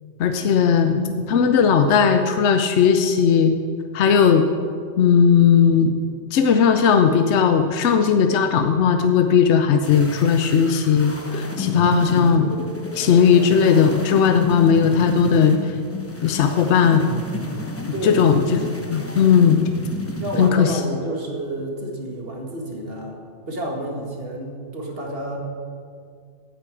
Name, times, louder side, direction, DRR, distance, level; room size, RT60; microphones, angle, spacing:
voice 1, 0.2-3.5 3.9-4.4 5.0-5.9 6.3-12.5 12.9-15.7 16.2-17.1 18.0-19.7 20.4-20.8, left 7 dB, 70° left, 7 dB, 1.0 m, -17 dB
sound 1, 9.8-20.5, left 1 dB, 15° left, 0.8 m, -31 dB
voice 2, 17.9-18.3 20.2-23.2 23.5-25.4, right 1 dB, 50° right, 0 dB, 2.1 m, -30 dB
9.6 x 9.0 x 8.3 m, 2.2 s
omnidirectional pair, 1.2 m